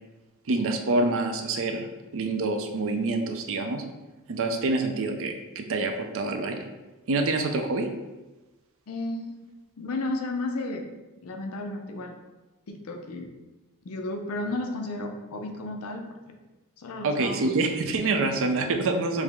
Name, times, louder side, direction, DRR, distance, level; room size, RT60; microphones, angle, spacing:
voice 1, 0.5-1.9 2.1-3.8 4.3-6.6 7.1-7.9 17.0-19.2, right 3 dB, 65° right, 5 dB, 0.5 m, -26 dB
voice 2, 8.9-9.4 9.8-10.9 11.2-12.2 12.7-13.3 13.8-16.1 16.8-17.7, left 2 dB, 70° left, 4 dB, 0.5 m, -33 dB
4.7 x 2.0 x 3.4 m, 1.1 s
head